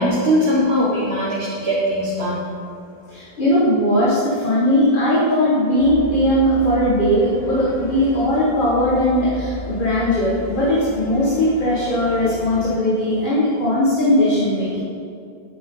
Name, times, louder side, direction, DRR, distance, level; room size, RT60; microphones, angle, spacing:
voice 1, 0.0-2.5, equal, 80° right, -6 dB, 1.6 m, -20 dB
voice 2, 3.1-14.8, equal, 50° left, -8 dB, 1.8 m, -18 dB
sound 1, 5.8-12.8, left 3 dB, 75° left, 1.3 m, -34 dB
9.0 x 8.4 x 3.8 m, 2.5 s
omnidirectional pair, 1.1 m